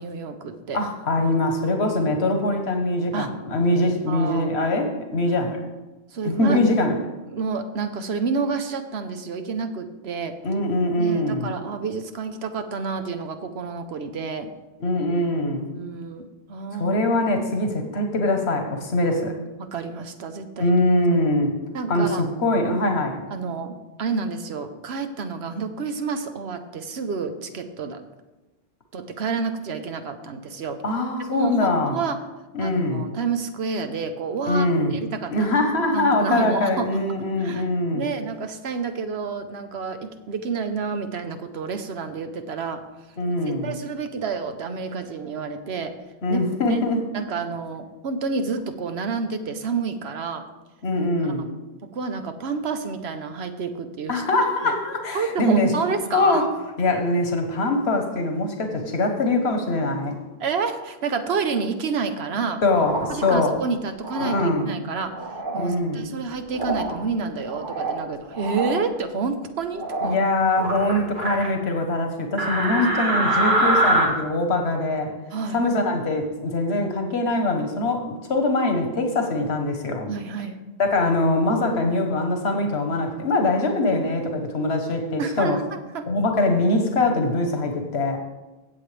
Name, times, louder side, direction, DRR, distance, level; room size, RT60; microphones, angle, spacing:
voice 1, 0.0-0.8 3.1-3.3 4.1-4.5 6.1-6.6 7.3-10.3 11.0-14.5 15.7-17.0 19.6-20.7 21.7-22.2 23.3-28.1 28.9-30.8 31.2-32.2 32.6-35.5 35.9-36.9 37.4-37.7 37.9-42.8 43.5-46.0 46.3-46.4 46.7-46.8 47.1-50.5 51.9-54.2 54.6-54.7 55.1-56.4 60.4-62.6 63.1-65.1 65.5-70.2 72.8-72.9 75.3-75.6 80.1-80.6 85.2-86.1, right 5 dB, 80° right, 8 dB, 1.1 m, -29 dB
voice 2, 0.7-5.6 6.2-6.9 10.4-11.5 14.8-15.7 16.7-19.3 20.6-21.5 21.9-23.2 30.8-32.0 32.5-33.1 34.5-35.0 35.3-38.0 43.2-43.7 46.2-47.0 50.8-51.5 54.1-55.7 56.1-56.5 56.8-60.2 62.6-63.6 64.2-64.7 65.6-66.1 70.0-75.1 75.5-80.1 80.8-85.6 86.1-88.2, left 2 dB, 85° left, 4 dB, 1.5 m, -23 dB
sound 1, 62.8-63.3 64.0-64.4 65.1-65.6 66.5-66.9 67.4-68.0 68.3-68.7 69.7-70.2 70.5-71.5 72.4-74.1, right 1 dB, 50° right, 1.8 m, -24 dB
16.0 x 7.7 x 3.4 m, 1.1 s
omnidirectional pair, 1.1 m